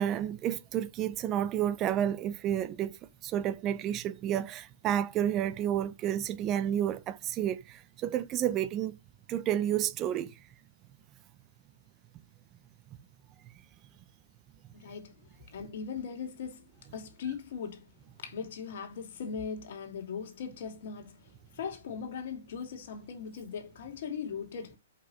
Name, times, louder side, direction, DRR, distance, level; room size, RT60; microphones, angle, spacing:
voice 1, 0.0-9.0 9.3-10.3, right 10 dB, 30° right, 1.2 m, -30 dB
voice 2, 14.7-24.8, left 6 dB, 60° left, 2.8 m, -40 dB
8.1 x 5.9 x 5.1 m
hypercardioid pair, 125°, 0 cm